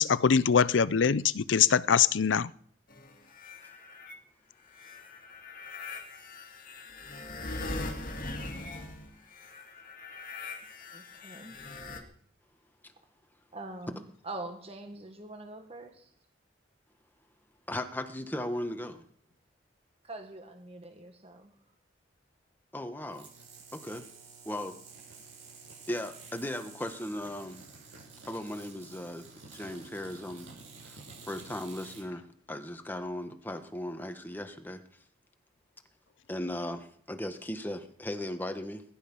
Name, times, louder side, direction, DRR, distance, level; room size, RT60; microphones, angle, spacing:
voice 1, 0.0-2.5, left 7 dB, 80° left, 0.5 m, -23 dB
sound 1, 2.9-4.1 4.7-12.0, left 2 dB, 45° left, 2.4 m, -41 dB
voice 2, 10.9-11.6 13.5-16.1 20.0-21.5, right 2 dB, 30° right, 1.5 m, -44 dB
voice 3, 17.7-19.0 22.7-23.3 23.7-24.1 24.4-24.8 25.9-27.6 28.3-30.5 30.8-31.0 31.3-34.8 36.3-38.8, left 1 dB, 10° left, 1.3 m, -37 dB
sound 2, 23.1-32.0, right 4 dB, 75° right, 7.7 m, -50 dB
20.5 x 11.5 x 5.5 m
head